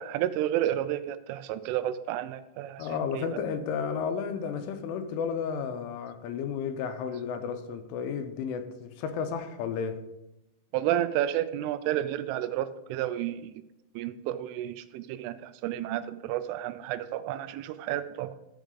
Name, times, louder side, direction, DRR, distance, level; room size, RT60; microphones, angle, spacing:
voice 1, 0.0-2.9 3.1-3.4 10.7-13.5 14.0-18.3, right 12 dB, 85° right, 13 dB, 3.1 m, -31 dB
voice 2, 2.8-10.0, left 6 dB, 85° left, 8 dB, 3.3 m, -32 dB
13.5 x 7.0 x 3.8 m, 0.92 s
omnidirectional pair, 5.6 m